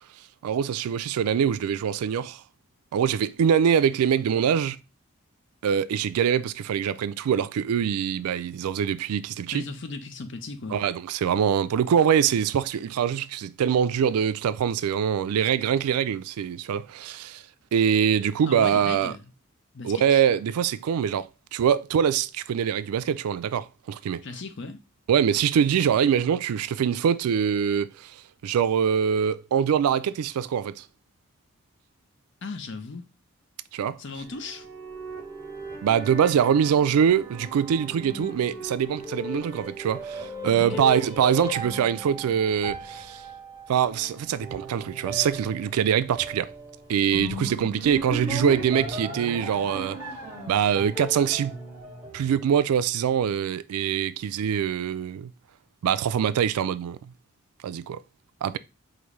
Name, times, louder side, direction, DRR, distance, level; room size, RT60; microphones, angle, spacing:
voice 1, 0.4-2.4 2.9-4.8 5.6-9.7 10.7-17.4 17.7-19.1 19.8-24.2 25.1-28.1 28.4-30.8 33.7-34.0 35.8-43.2 43.7-46.5 46.9-50.0 50.5-51.6 52.1-55.3 55.8-57.0 57.6-58.0 58.4-58.6, right 8 dB, 90° right, 0.3 m, -24 dB
voice 2, 9.5-10.8 18.5-19.2 19.7-20.2 24.2-24.8 32.4-33.0 34.0-34.7 40.5-40.9, left 3 dB, 55° left, 0.5 m, -37 dB
sound 1, 34.2-52.8, right 1 dB, 10° right, 1.1 m, -37 dB
5.0 x 2.6 x 3.1 m
head